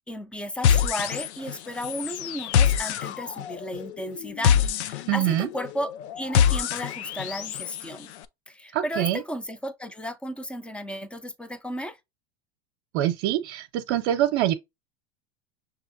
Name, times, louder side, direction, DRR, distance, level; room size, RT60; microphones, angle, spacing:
voice 1, 0.1-5.9 6.2-8.1 8.5-12.0, equal, 5° left, 0.4 m, -34 dB
sound 1, 0.6-1.6 1.8-7.8, left 8 dB, 90° left, 0.5 m, -25 dB
voice 2, 5.1-5.5 8.7-9.2 12.9-14.5, right 13 dB, 60° right, 0.7 m, -24 dB
6.0 x 2.9 x 2.5 m
hypercardioid pair, 105°, 33 cm